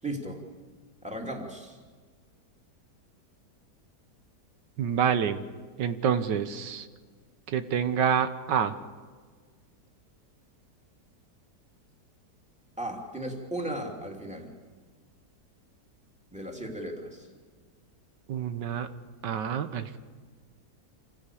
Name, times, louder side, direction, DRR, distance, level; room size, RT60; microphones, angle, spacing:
voice 1, 0.0-0.4 1.0-1.8 12.8-14.5 16.3-17.3, right 1 dB, 5° right, 1 dB, 2.9 m, -36 dB
voice 2, 4.8-5.4 5.8-6.9 7.5-8.8 18.3-18.9 19.2-20.0, right 8 dB, 85° right, 10 dB, 1.6 m, -27 dB
27.5 x 16.0 x 8.5 m, 1.5 s
omnidirectional pair, 1.9 m